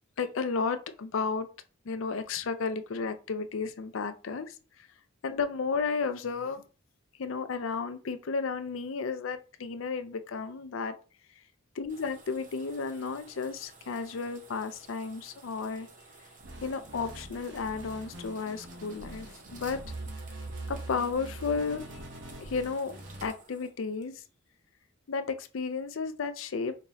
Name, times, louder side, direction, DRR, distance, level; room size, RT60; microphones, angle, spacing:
voice 1, 0.2-1.5 1.9-4.5 5.2-6.6 7.2-10.9 11.8-15.9 16.6-19.8 20.7-21.8 22.4-24.2 25.1-26.8, left 5 dB, 65° left, 0.5 m, -33 dB
sound 1, 11.9-24.4, right 3 dB, 35° right, 0.7 m, -54 dB
sound 2, 16.4-23.3, right 2 dB, 55° right, 1.1 m, -43 dB
5.2 x 2.9 x 2.8 m
head